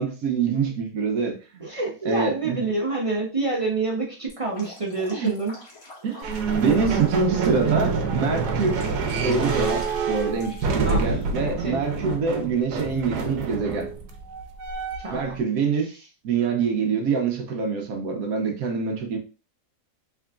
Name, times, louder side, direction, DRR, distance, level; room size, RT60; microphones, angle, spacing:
voice 1, 0.0-1.6 2.0-2.7 5.1-5.3 6.0-8.8 9.2-13.9 15.1-15.9 16.2-19.2, right 5 dB, 70° right, 1.1 m, -25 dB
voice 2, 1.6-5.5 10.8-11.2 11.6-11.8 15.0-15.3, right 3 dB, 55° right, 0.3 m, -27 dB
Drip, 4.3-7.8 8.2-11.4, left 2 dB, 45° left, 1.4 m, -45 dB
sound 1, 6.2-15.3, right 4 dB, 85° right, 1.2 m, -27 dB
3.7 x 3.4 x 2.4 m
omnidirectional pair, 1.7 m